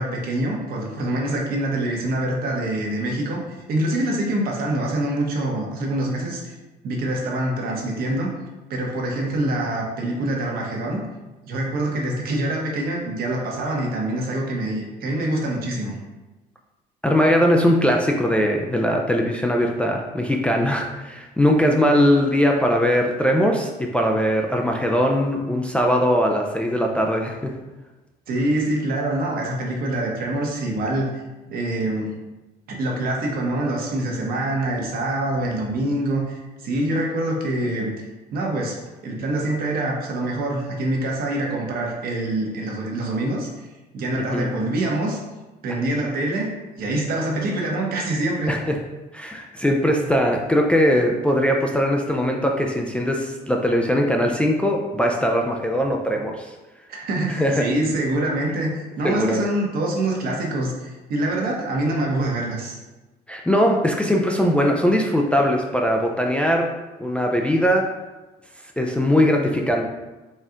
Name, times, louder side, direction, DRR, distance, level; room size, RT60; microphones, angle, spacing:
voice 1, 0.0-3.4 3.7-6.5 6.8-8.3 8.7-11.0 11.5-15.9 28.3-31.2 31.5-32.1 32.7-38.8 39.0-43.7 43.9-45.2 45.6-46.5 46.8-48.5 56.9-58.7 59.0-62.8, right 1 dB, 60° right, -1 dB, 1.0 m, -25 dB
voice 2, 17.0-27.5 44.2-44.5 48.5-48.6 49.1-56.5 57.3-57.6 59.0-59.4 63.3-66.7 67.0-67.9 68.8-69.8, equal, 5° left, 0 dB, 0.3 m, -20 dB
4.2 x 2.3 x 3.7 m, 1.1 s
cardioid pair, 110°, 17 cm